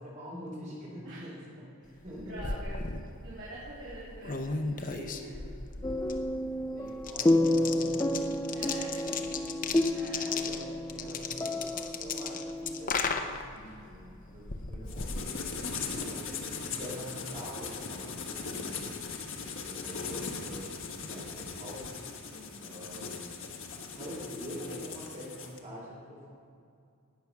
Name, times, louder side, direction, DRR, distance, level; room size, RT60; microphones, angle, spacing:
voice 1, 0.0-1.7 2.0-2.6 5.8-6.0 6.7-8.3 10.2-15.4 16.0-19.1 19.5-21.9 22.6-23.5 23.9-26.3, equal, 35° right, -4 dB, 3.7 m, -45 dB
voice 2, 1.6-2.8 3.2-5.5 8.5-9.5 9.9-10.4 15.8-16.2 22.3-22.7, right 1 dB, 55° right, -9 dB, 3.3 m, -46 dB
sound 1, 2.0-16.0, left 4 dB, 40° left, 0.8 m, -37 dB
sound 2, 5.8-12.9, left 1 dB, 15° left, 0.4 m, -30 dB
sound 3, 14.9-25.6, left 5 dB, 60° left, 1.5 m, -39 dB
18.5 x 7.2 x 6.1 m, 2.4 s
head